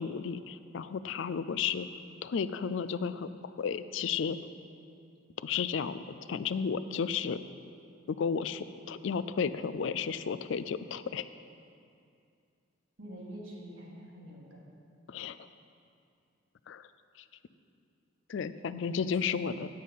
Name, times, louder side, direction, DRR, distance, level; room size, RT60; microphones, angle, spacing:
voice 1, 0.0-1.9 2.2-3.3 3.6-4.4 5.4-6.0 6.3-7.4 8.1-11.3 15.1-15.4 16.7-16.8 18.3-19.7, left 6 dB, 65° left, 13 dB, 0.3 m, -33 dB
voice 2, 13.0-14.6 18.7-19.5, right 1 dB, 75° right, -3 dB, 2.0 m, -46 dB
9.0 x 8.5 x 5.4 m, 2.4 s
head